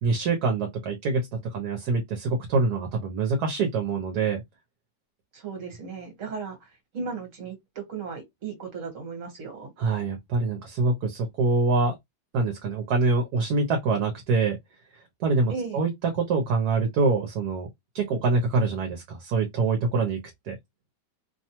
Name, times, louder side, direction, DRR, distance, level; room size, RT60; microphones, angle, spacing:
voice 1, 0.0-4.4 9.8-11.9 12.3-14.6 15.2-17.7 17.9-20.2 20.5-20.6, right 3 dB, 70° right, 1.1 m, -25 dB
voice 2, 5.3-6.7 6.9-9.7 15.5-15.8, right 5 dB, 50° right, 1.4 m, -36 dB
2.9 x 2.2 x 2.8 m
omnidirectional pair, 1.8 m